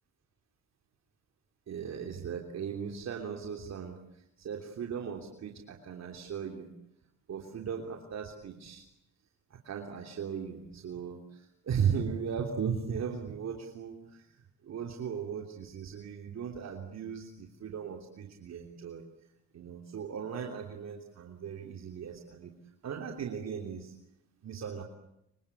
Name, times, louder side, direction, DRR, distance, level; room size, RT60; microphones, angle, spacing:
voice 1, 1.7-4.0 4.4-6.7 7.3-8.9 9.5-14.2 14.6-19.0 19.5-22.5 22.8-23.9 24.4-24.8, right 7 dB, 60° right, 2 dB, 3.3 m, -37 dB
25.5 x 24.5 x 8.6 m, 0.80 s
cardioid pair, 90°, 30 cm